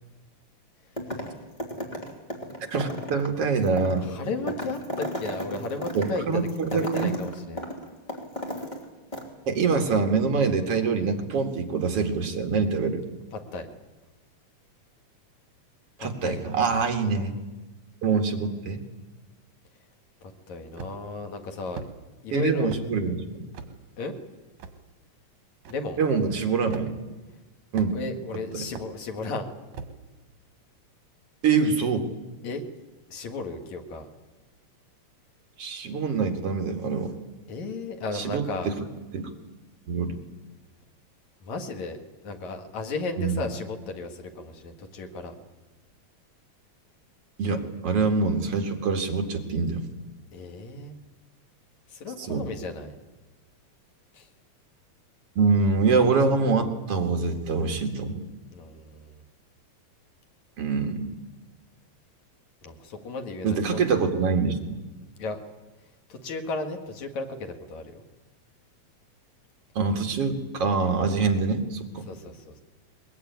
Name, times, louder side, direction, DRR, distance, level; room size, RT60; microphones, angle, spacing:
sound 1, 1.0-1.3 1.6-8.8 9.1-9.2, equal, 15° left, 3.5 m, -34 dB
voice 1, 2.7-4.1 5.9-7.1 9.5-13.0 16.0-17.4 18.0-18.8 22.3-23.5 26.0-26.9 27.7-28.0 28.5-28.6 31.4-32.1 35.6-37.1 38.1-38.8 39.1-39.3 39.9-40.2 43.2-43.4 47.4-49.8 52.2-52.5 55.4-58.2 60.6-61.2 63.4-64.6 69.8-72.1, right 4 dB, 55° right, 4 dB, 2.8 m, -25 dB
voice 2, 4.0-7.7 13.3-13.7 16.0-16.9 20.2-21.9 22.2-22.7 24.0-24.1 25.7-26.0 27.9-29.5 32.4-32.6 33.1-34.1 37.5-38.7 41.4-45.3 50.3-50.9 51.9-52.9 54.1-54.3 58.5-59.2 62.6-64.0 65.2-65.4 66.1-68.0 72.0-72.5, left 3 dB, 75° left, 5 dB, 3.3 m, -35 dB
sound 2, 20.8-21.2 21.8-21.9 22.7-22.9 23.5-23.7 24.6-24.8 25.7-25.8 26.7-26.9 27.8-28.2 28.8-28.9 29.7-30.0, right 5 dB, 75° right, 3.1 m, -39 dB
21.5 x 21.0 x 9.4 m, 1.2 s
omnidirectional pair, 3.3 m